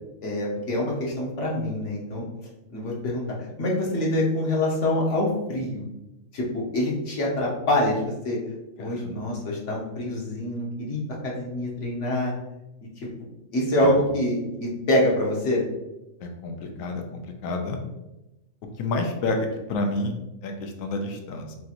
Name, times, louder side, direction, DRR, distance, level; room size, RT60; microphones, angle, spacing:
voice 1, 0.2-2.2 2.7-5.8 6.3-8.4 8.8-12.3 13.5-15.6, left 1 dB, 65° left, -3 dB, 1.4 m, -25 dB
voice 2, 8.8-9.2 13.8-13.9 16.2-17.8 18.8-20.1 20.4-21.6, left 2 dB, 85° left, 4 dB, 1.1 m, -29 dB
6.0 x 2.5 x 2.9 m, 0.96 s
omnidirectional pair, 1.4 m